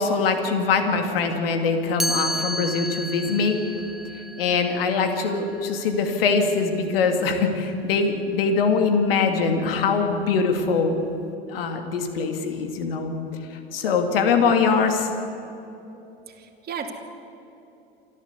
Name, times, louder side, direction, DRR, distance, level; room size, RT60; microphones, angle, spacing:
voice 1, 0.0-3.6 4.4-11.0 11.5-13.1 13.5-15.1, left 5 dB, 70° left, 6 dB, 2.5 m, -22 dB
Chime, 2.0-7.9, equal, ahead, 0.8 m, -33 dB
voice 2, 16.3-16.9, right 7 dB, 30° right, 1 dB, 2.9 m, -34 dB
27.5 x 12.5 x 8.3 m, 2.9 s
figure-of-eight pair, 75°, 30 cm